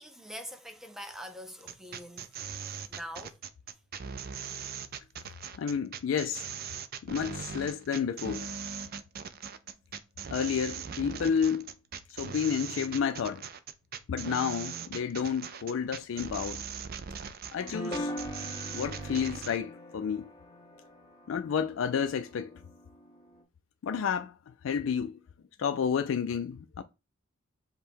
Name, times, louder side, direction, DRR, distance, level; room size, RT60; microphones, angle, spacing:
voice 1, 0.0-2.4 2.9-3.4, equal, ahead, 0.6 m, -44 dB
sound 1, 1.6-19.6, right 7 dB, 50° right, 0.4 m, -40 dB
voice 2, 5.6-6.5 7.0-8.5 10.3-11.7 12.1-13.4 14.1-16.6 17.5-18.1 18.7-20.3 21.3-22.6 23.8-25.2 25.6-26.8, left 7 dB, 75° left, 0.3 m, -31 dB
sound 2, 17.6-23.4, left 1 dB, 20° left, 1.0 m, -42 dB
5.3 x 2.2 x 4.5 m
head